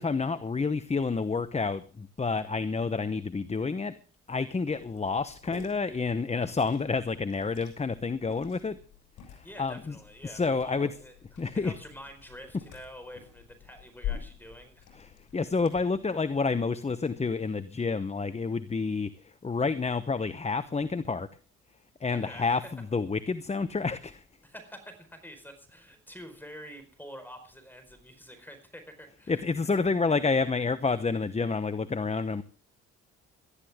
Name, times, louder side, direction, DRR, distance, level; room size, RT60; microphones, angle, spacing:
voice 1, 0.0-3.9 4.3-8.8 9.3-10.9 11.4-11.8 14.9-21.3 22.0-24.2 29.3-32.4, left 4 dB, 20° left, 12 dB, 1.0 m, -29 dB
Liquid, 4.7-15.8, left 9 dB, 80° left, 6.5 m, -45 dB
voice 2, 9.4-11.2 11.5-14.8 22.1-22.5 24.4-29.4, equal, 5° left, 7 dB, 4.7 m, -47 dB
18.0 x 13.5 x 3.6 m, 0.42 s
cardioid pair, 90°, 30 cm